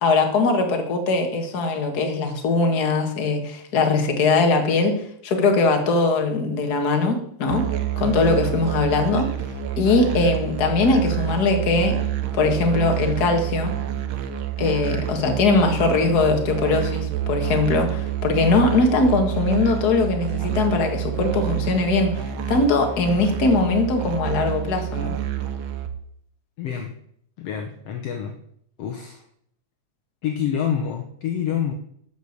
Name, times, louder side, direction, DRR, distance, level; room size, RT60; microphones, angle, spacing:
voice 1, 0.0-5.0 5.2-7.6 8.0-9.3 9.8-12.0 12.3-13.7 14.6-22.1 22.5-25.2, left 3 dB, 40° left, 4 dB, 1.8 m, -21 dB
Musical instrument, 7.5-25.9, right 10 dB, 65° right, 1.4 m, -28 dB
voice 2, 26.6-26.9 27.4-28.4 28.8-29.2 30.2-31.7, left 8 dB, 65° left, 4 dB, 1.8 m, -27 dB
12.5 x 6.4 x 6.6 m, 0.70 s
omnidirectional pair, 3.3 m